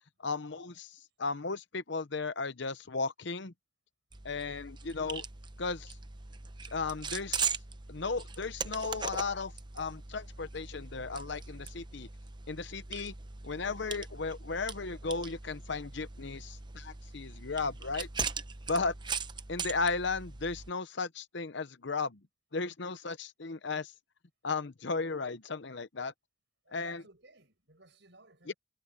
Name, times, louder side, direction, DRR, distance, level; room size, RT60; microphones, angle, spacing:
voice 1, 0.2-3.5 4.2-5.2 5.6-6.0 6.7-7.6 7.9-12.1 12.5-13.1 13.4-18.1 18.7-18.9 19.5-22.2 22.5-23.9 24.4-26.1 26.7-27.0 28.5-28.6, left 4 dB, 60° left, 0.8 m, -35 dB
sound 1, 4.1-20.7, right 5 dB, 20° right, 0.7 m, -40 dB
voice 2, 26.6-28.5, right 2 dB, 55° right, 7.3 m, -58 dB
head